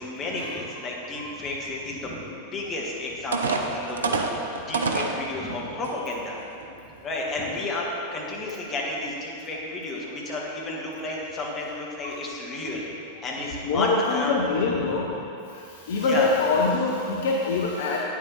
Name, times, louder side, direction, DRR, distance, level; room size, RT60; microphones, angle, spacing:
voice 1, 0.0-2.2 2.5-4.2 4.6-6.4 7.0-7.9 8.1-12.8 13.2-14.3 14.8-14.9 16.0-16.3, left 2 dB, 25° left, -3 dB, 1.7 m, -31 dB
sound 1, 2.7-2.8 3.3-5.2 5.8-5.9 6.4-6.7, right 4 dB, 70° right, 0.6 m, -26 dB
voice 2, 13.6-15.1 15.9-18.0, left 3 dB, 55° left, -1 dB, 0.7 m, -24 dB
9.1 x 7.4 x 4.2 m, 2.7 s
figure-of-eight pair, 90°, 0 cm